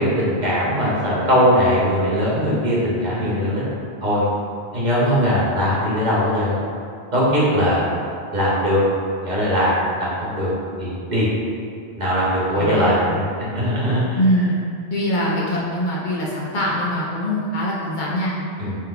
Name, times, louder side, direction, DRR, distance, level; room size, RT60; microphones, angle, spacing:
voice 1, 0.0-3.6 4.0-4.3 4.7-6.6 7.1-7.9 8.3-8.8 9.2-9.7 10.0-10.5 10.8-11.3 12.0-13.3 13.5-14.2 18.6-18.8, equal, 45° right, -7 dB, 1.0 m, -20 dB
voice 2, 12.5-12.9 14.2-14.5 14.9-18.3, equal, 55° left, -5 dB, 0.7 m, -22 dB
4.3 x 2.7 x 3.9 m, 2.4 s
omnidirectional pair, 1.1 m